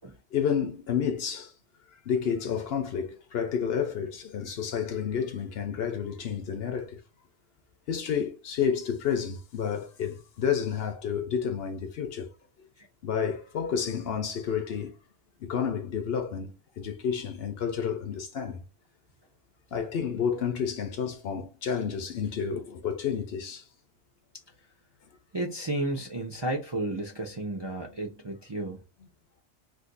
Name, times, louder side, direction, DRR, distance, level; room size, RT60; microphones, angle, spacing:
voice 1, 0.3-1.5 2.1-7.0 7.9-12.3 13.0-15.0 15.4-18.6 19.7-23.6, left 7 dB, 60° left, 0.8 m, -30 dB
voice 2, 25.3-28.8, right 1 dB, 35° right, 0.4 m, -32 dB
2.6 x 2.5 x 3.8 m
omnidirectional pair, 1.2 m